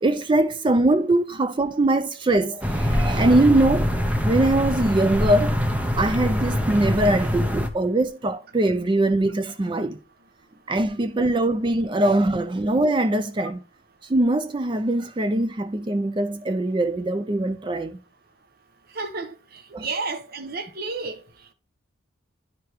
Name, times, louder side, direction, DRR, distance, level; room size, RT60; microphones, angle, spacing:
voice 1, 0.0-3.9 4.2-5.5 6.0-10.0 10.7-13.6 14.1-18.0 19.7-19.9, right 1 dB, 25° right, 0.4 m, -22 dB
sound 1, 2.6-7.7, equal, 5° right, 0.8 m, -24 dB
voice 2, 18.9-19.3 19.8-21.2, right 3 dB, 50° right, 1.0 m, -30 dB
10.0 x 4.7 x 3.0 m
head